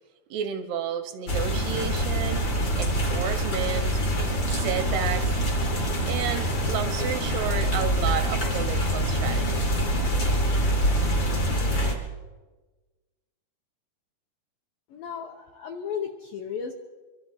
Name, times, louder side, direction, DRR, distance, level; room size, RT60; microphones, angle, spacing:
voice 1, 0.3-2.4 2.8-4.0 4.5-5.4 6.0-9.7, right 8 dB, 80° right, 8 dB, 2.5 m, -31 dB
sound 1, 1.3-11.9, equal, 55° left, 1.1 m, -25 dB
voice 2, 14.9-16.7, left 7 dB, 75° left, 3 dB, 2.1 m, -34 dB
24.0 x 13.5 x 4.4 m, 1.3 s
omnidirectional pair, 5.1 m